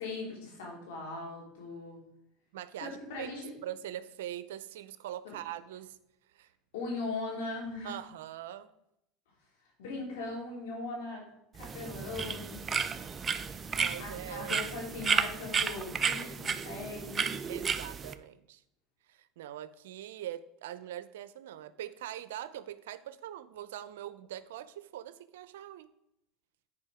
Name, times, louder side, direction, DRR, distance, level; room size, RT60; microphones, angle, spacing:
voice 1, 0.0-2.0 2.8-3.5 5.2-5.3 6.7-8.0 9.8-11.3 11.5-12.7 14.0-17.3, left 3 dB, 85° left, -1 dB, 3.3 m, -39 dB
voice 2, 2.5-3.3 3.6-6.0 6.3-6.5 7.8-8.7 13.7-14.6 17.5-18.6 19.1-25.9, right 12 dB, 85° right, 14 dB, 0.5 m, -42 dB
sound 1, 11.6-18.1, right 6 dB, 25° right, 0.5 m, -33 dB
9.6 x 4.9 x 4.9 m, 0.80 s
supercardioid pair, 105°, 0 cm